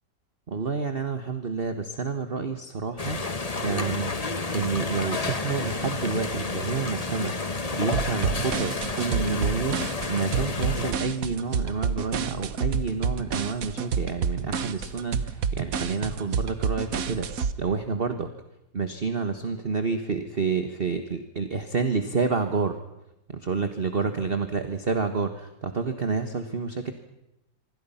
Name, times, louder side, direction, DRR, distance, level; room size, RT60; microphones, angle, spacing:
voice 1, 0.5-3.2 3.6-9.8 10.1-18.3 18.7-22.8 23.3-26.9, right 4 dB, 35° right, 8 dB, 1.5 m, -29 dB
sound 1, 3.0-10.9, left 3 dB, 25° left, 1.3 m, -30 dB
sound 2, 7.9-17.5, right 6 dB, 55° right, 1.4 m, -28 dB
26.0 x 25.5 x 5.7 m, 0.87 s
omnidirectional pair, 1.9 m